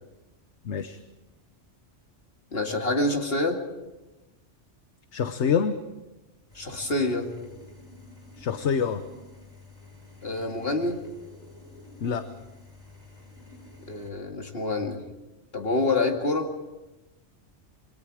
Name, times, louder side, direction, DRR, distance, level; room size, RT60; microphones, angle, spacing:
voice 1, 0.6-1.0 5.1-5.8 8.4-9.0 12.0-12.3, left 7 dB, 70° left, 9 dB, 1.2 m, -26 dB
voice 2, 2.5-3.6 6.5-7.3 10.2-11.0 13.9-15.0 15.5-16.5, left 2 dB, 55° left, 3 dB, 2.6 m, -27 dB
sound 1, 6.5-14.1, left 2 dB, 35° left, 5.6 m, -49 dB
28.0 x 22.0 x 4.9 m, 1.0 s
omnidirectional pair, 1.2 m